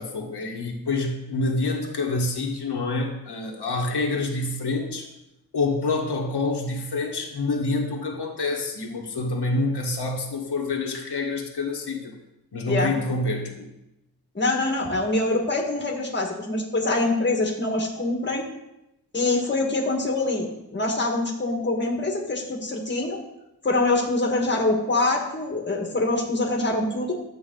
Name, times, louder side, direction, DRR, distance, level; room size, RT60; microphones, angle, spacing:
voice 1, 0.0-5.1 5.5-12.1 12.5-13.7, left 2 dB, 85° left, 0 dB, 1.6 m, -27 dB
voice 2, 14.4-18.4 19.1-20.5 20.7-23.2 23.6-27.1, left 2 dB, 30° left, 1 dB, 1.8 m, -24 dB
11.5 x 7.8 x 3.9 m, 0.90 s
wide cardioid pair, 110°, 39 cm